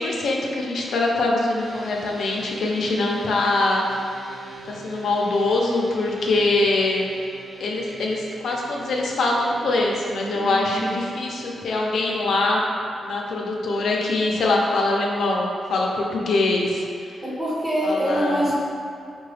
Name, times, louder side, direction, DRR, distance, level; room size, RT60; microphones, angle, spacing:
voice 1, 0.0-4.0 4.6-7.1 7.6-12.6 13.0-16.8 17.8-18.4, left 2 dB, 70° left, -2 dB, 0.5 m, -23 dB
sound 1, 1.6-13.7, right 3 dB, 45° right, 1.5 m, -43 dB
voice 2, 10.3-10.9 17.2-18.5, equal, 15° right, -11 dB, 1.0 m, -25 dB
4.6 x 2.2 x 3.2 m, 2.4 s
wide cardioid pair, 145°, 0 cm